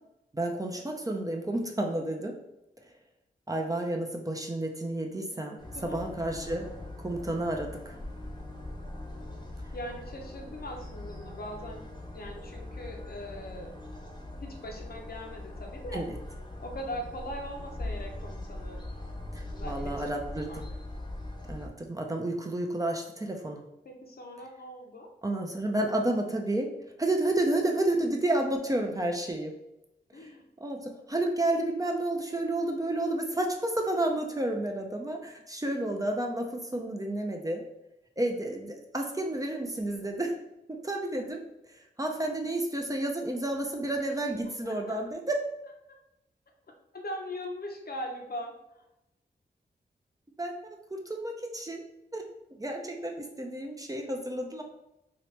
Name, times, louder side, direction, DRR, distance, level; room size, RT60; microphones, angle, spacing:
voice 1, 0.3-2.4 3.5-6.7 7.0-8.0 15.9-16.1 19.3-20.5 21.5-23.6 25.2-26.7 27.0-29.5 30.2-30.3 30.6-37.6 38.2-40.4 40.7-41.4 41.7-45.4 50.4-50.6 50.9-51.8 52.1-52.2 52.6-54.6, right 1 dB, 20° right, 2 dB, 0.5 m, -31 dB
sound 1, 5.6-21.7, left 1 dB, 25° left, 0.8 m, -41 dB
voice 2, 5.7-6.0 6.3-6.4 9.7-11.9 12.1-13.7 14.4-16.0 16.6-18.8 19.5-20.6 23.8-25.1 30.1-30.4 44.6-45.0 46.9-48.9, equal, 60° left, 1 dB, 0.7 m, -40 dB
2.9 x 2.9 x 3.2 m, 0.86 s
wide cardioid pair, 70°, 18 cm